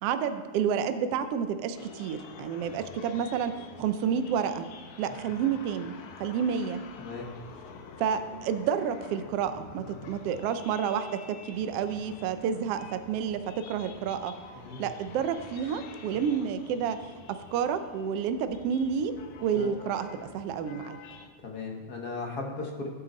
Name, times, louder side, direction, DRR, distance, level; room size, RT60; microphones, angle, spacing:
voice 1, 0.0-4.7 5.0-6.8 8.0-14.3 14.8-17.0 17.3-19.1 19.4-20.1 20.3-21.0, right 7 dB, 85° right, 10 dB, 1.3 m, -30 dB
sound 1, 1.8-21.3, left 6 dB, 70° left, 2.3 m, -48 dB
voice 2, 21.4-22.9, left 3 dB, 45° left, 1 dB, 1.4 m, -36 dB
20.5 x 8.6 x 4.0 m, 1.4 s
omnidirectional pair, 3.7 m